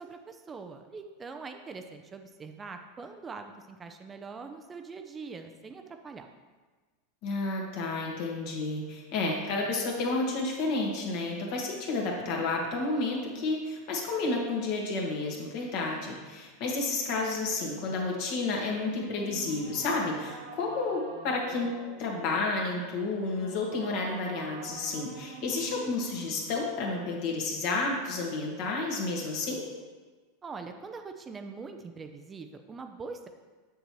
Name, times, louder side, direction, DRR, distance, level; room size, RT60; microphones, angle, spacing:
voice 1, 0.0-6.3 30.4-33.3, right 4 dB, 25° right, 6 dB, 0.5 m, -43 dB
voice 2, 7.2-21.7 22.0-29.7, left 3 dB, 60° left, -1 dB, 1.7 m, -31 dB
sound 1, 18.6-26.5, right 4 dB, 70° right, 1.5 m, -46 dB
6.8 x 6.6 x 3.1 m, 1.3 s
hypercardioid pair, 95°, 0 cm